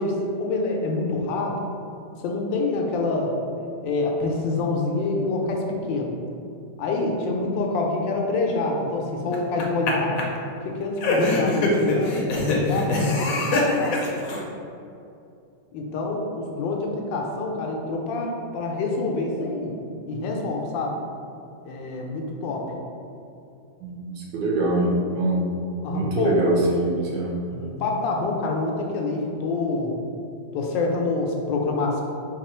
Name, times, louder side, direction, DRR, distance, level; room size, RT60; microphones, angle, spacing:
voice 1, 0.0-1.6 2.2-3.3 3.8-6.1 6.8-10.2 10.6-14.0 15.7-19.7 20.1-21.0 21.6-22.7 25.8-26.4 27.5-29.9 30.5-32.0, left 3 dB, 90° left, 0 dB, 1.4 m, -26 dB
sound 1, 9.3-9.9 10.2-10.3 11.0-14.4, left 2 dB, 65° left, 0.9 m, -23 dB
voice 2, 23.8-25.5 25.9-27.3, right 1 dB, 90° right, -2 dB, 1.4 m, -24 dB
4.4 x 2.4 x 4.3 m, 2.6 s
omnidirectional pair, 1.9 m